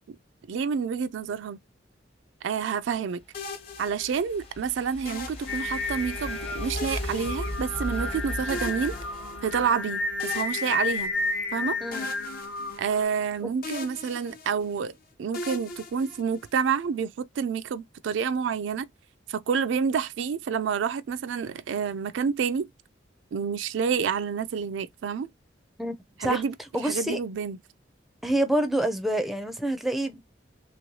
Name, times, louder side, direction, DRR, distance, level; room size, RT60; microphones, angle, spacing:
voice 1, 0.5-1.6 2.4-3.2 3.8-9.0 9.4-11.1 11.5-11.8 12.8-14.9 15.2-18.9 19.3-22.7 23.3-25.3 26.2-26.5 26.8-27.6, right 6 dB, 75° right, 0.3 m, -28 dB
sound 1, 3.2-10.5, left 1 dB, 35° left, 0.9 m, -38 dB
sound 2, 3.3-4.5 5.1-6.2 6.8-8.1 8.5-9.7 10.2-11.6 11.9-13.3 13.6-14.8 15.3-16.7, left 3 dB, 50° left, 0.6 m, -40 dB
Singing, 5.5-13.0, left 3 dB, 80° left, 1.0 m, -32 dB
voice 2, 26.7-27.2 28.2-30.2, right 1 dB, ahead, 0.5 m, -27 dB
3.1 x 3.0 x 2.6 m
head